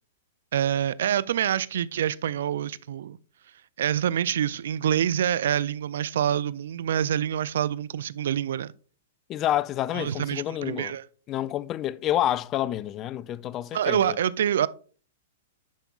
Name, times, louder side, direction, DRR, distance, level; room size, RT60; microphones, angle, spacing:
voice 1, 0.5-3.2 3.8-8.7 9.9-11.0 13.7-14.7, right 10 dB, 70° right, 0.3 m, -26 dB
voice 2, 9.3-10.9 11.3-14.2, left 12 dB, 35° left, 0.3 m, -28 dB
10.5 x 5.2 x 2.4 m
hypercardioid pair, 115°, 0 cm